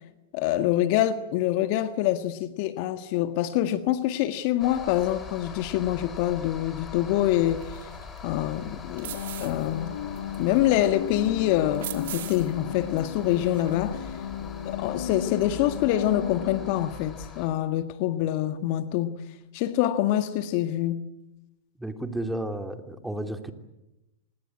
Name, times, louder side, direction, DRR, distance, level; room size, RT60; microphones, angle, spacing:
voice 1, 0.3-7.7 8.2-9.1 9.4-10.0 10.4-14.0 14.6-19.1 19.5-21.0, left 13 dB, 50° left, 1.6 m, -25 dB
sound 1, 4.6-17.5, left 5 dB, 25° left, 5.0 m, -42 dB
sound 2, 7.6-14.8, right 12 dB, 65° right, 2.6 m, -43 dB
sound 3, 9.1-16.9, left 9 dB, 75° left, 1.6 m, -35 dB
voice 2, 21.8-23.5, right 1 dB, 5° right, 2.9 m, -32 dB
26.5 x 20.5 x 9.8 m
hypercardioid pair, 100°, 0 cm